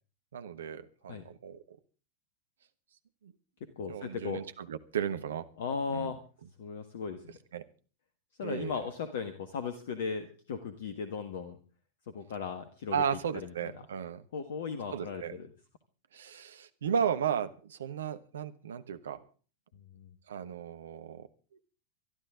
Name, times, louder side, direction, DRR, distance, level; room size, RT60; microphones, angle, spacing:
voice 1, 0.3-1.8 3.2-3.3 3.9-5.5 5.9-6.1 7.5-7.7 8.4-8.9 12.9-14.2 14.9-15.4 16.1-19.3 20.3-21.3, right 7 dB, 65° right, 12 dB, 1.1 m, -35 dB
voice 2, 3.8-4.4 5.6-6.2 6.6-7.4 8.4-11.6 12.1-13.2 14.3-15.5 19.9-20.1, left 5 dB, 55° left, 9 dB, 1.5 m, -37 dB
23.5 x 12.5 x 3.7 m, 0.37 s
figure-of-eight pair, 90°, 0 cm